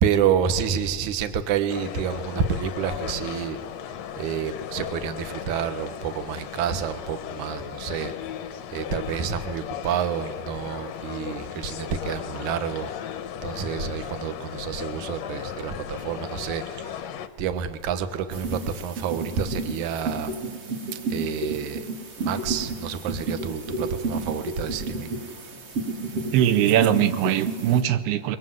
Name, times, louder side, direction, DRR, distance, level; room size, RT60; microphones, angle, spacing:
voice 1, 0.0-3.6 4.2-8.1 8.7-12.9 13.4-17.0 17.4-20.3 20.9-21.9 22.2-25.1, right 7 dB, 60° right, 9 dB, 2.5 m, -28 dB
sound 1, 1.7-17.3, left 8 dB, 75° left, 1.6 m, -36 dB
sound 2, 18.3-27.8, right 2 dB, 40° right, 3.5 m, -31 dB
voice 2, 26.3-28.4, right 11 dB, 85° right, 11 dB, 2.8 m, -21 dB
25.5 x 22.5 x 7.8 m, 1.5 s
omnidirectional pair, 4.3 m